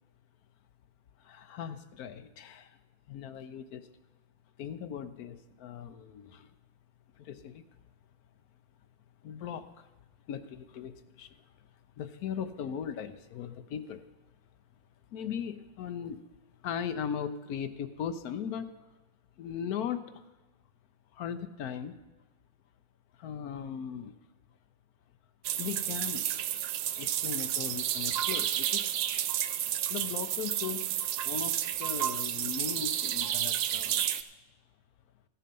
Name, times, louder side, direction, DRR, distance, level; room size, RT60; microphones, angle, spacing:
voice 1, 1.2-2.8 3.1-3.9 4.6-6.5 7.2-7.6 9.2-9.9 10.3-11.3 12.0-14.0 15.1-16.2 16.6-18.7 19.4-20.2 21.1-22.0 23.2-24.1 25.6-26.3 27.0-28.9 29.9-30.9 31.2-34.0, left 8 dB, 65° left, 10 dB, 1.0 m, -38 dB
sound 1, 25.4-34.2, right 11 dB, 75° right, 1.0 m, -31 dB
13.5 x 8.4 x 5.3 m, 1.1 s
omnidirectional pair, 2.1 m